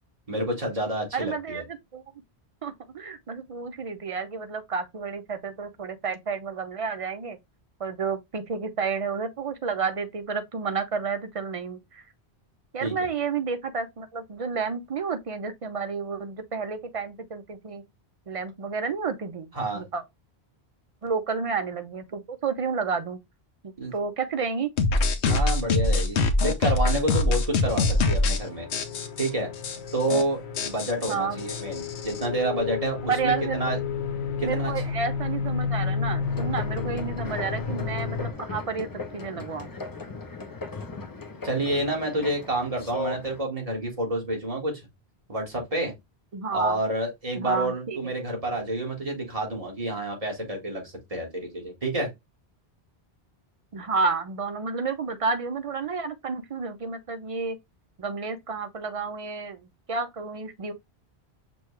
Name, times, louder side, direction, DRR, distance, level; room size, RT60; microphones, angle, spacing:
voice 1, 0.3-1.6 12.8-12.9 19.5-19.8 23.8-23.9 25.3-28.7 29.2-29.5 29.9-33.8 34.4-34.7 41.4-44.8 45.3-45.9 46.5-52.1, right 1 dB, 35° right, 1.6 m, -29 dB
voice 2, 1.1-2.0 2.6-7.4 7.8-12.0 12.7-17.8 18.3-19.5 19.7-20.0 21.0-23.2 23.6-24.7 31.1-31.4 33.1-33.7 34.4-38.9 39.1-39.7 46.3-46.8 47.3-48.1 53.7-57.6 58.0-60.7, right 5 dB, 55° right, 0.4 m, -30 dB
sound 1, 24.8-28.4 28.7-29.3 29.6-29.8 30.0-30.2 30.6-32.3, left 2 dB, 85° left, 0.9 m, -24 dB
sound 2, 27.5-38.3, left 6 dB, 55° left, 0.8 m, -32 dB
sound 3, 36.2-43.4, left 3 dB, 30° left, 0.4 m, -38 dB
6.1 x 2.3 x 3.0 m
omnidirectional pair, 1.1 m